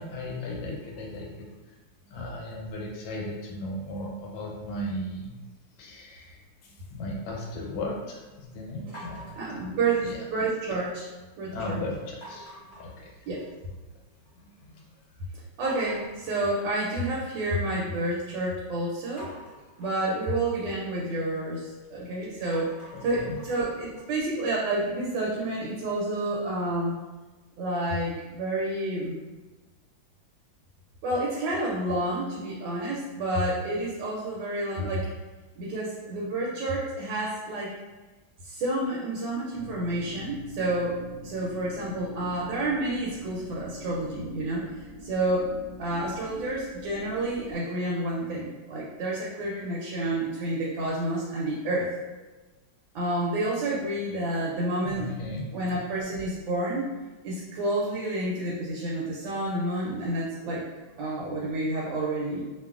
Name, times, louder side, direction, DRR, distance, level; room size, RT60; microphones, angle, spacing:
voice 1, 0.0-5.3 5.8-9.3 9.5-10.2 11.5-12.5 12.8-13.1 14.4-15.0 22.9-23.4 54.8-55.4, left 1 dB, 85° left, -2 dB, 1.4 m, -36 dB
sound 1, 8.9-10.4 10.8-11.3 12.2-13.7 14.1-14.6 15.0-15.1 15.6-17.8 19.2-22.0 22.4-25.3, equal, 10° left, 1.2 m, -48 dB
voice 2, 9.4-11.1 11.4-11.8 13.3-13.4 15.6-19.3 19.8-22.7 23.0-26.9 27.6-29.2 31.0-35.1 35.6-37.7 38.4-44.7 45.0-45.5 45.8-51.9 52.9-55.1 55.5-56.9 57.2-60.7 61.0-62.4, right 1 dB, 80° right, -4 dB, 1.3 m, -29 dB
sound 2, 39.5-47.6, equal, 65° left, 1.2 m, -44 dB
2.9 x 2.3 x 2.3 m, 1.2 s
omnidirectional pair, 2.1 m